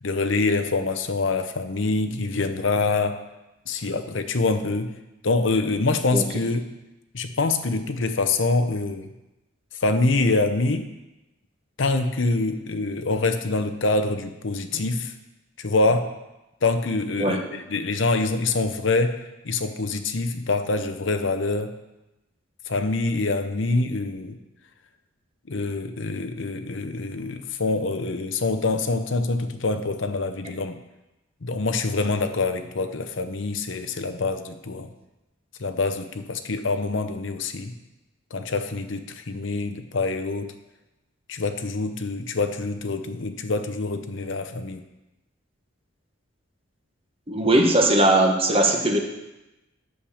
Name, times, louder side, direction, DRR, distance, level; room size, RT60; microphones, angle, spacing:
voice 1, 0.0-3.2 3.7-4.9 5.2-6.7 7.1-9.1 9.8-10.9 11.8-15.1 15.6-16.1 16.6-21.7 22.7-24.4 25.5-30.8 31.4-34.9 35.6-37.7 38.3-40.5 41.3-44.8, left 3 dB, 65° left, 8 dB, 0.8 m, -25 dB
voice 2, 47.3-49.0, right 1 dB, 30° right, 2 dB, 1.2 m, -19 dB
8.6 x 6.7 x 7.1 m, 0.99 s
head